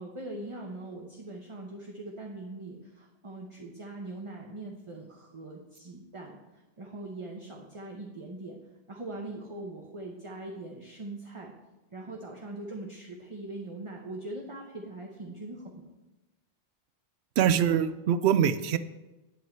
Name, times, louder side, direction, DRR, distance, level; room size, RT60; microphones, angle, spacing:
voice 1, 0.0-6.4 6.8-8.6 8.9-11.5 11.9-15.9, right 2 dB, 30° right, 0 dB, 0.9 m, -41 dB
voice 2, 17.4-18.8, right 9 dB, 85° right, 13 dB, 0.8 m, -24 dB
8.4 x 8.2 x 4.4 m, 1.1 s
omnidirectional pair, 1.1 m